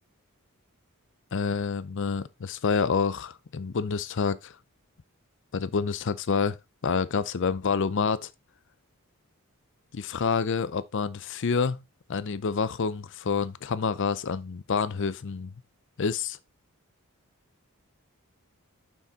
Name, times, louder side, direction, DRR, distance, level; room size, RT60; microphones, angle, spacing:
voice 1, 1.3-4.5 5.5-6.6 6.8-8.3 9.9-11.8 12.1-15.5 16.0-16.4, left 5 dB, 55° left, 0.5 m, -28 dB
7.2 x 5.9 x 4.0 m
head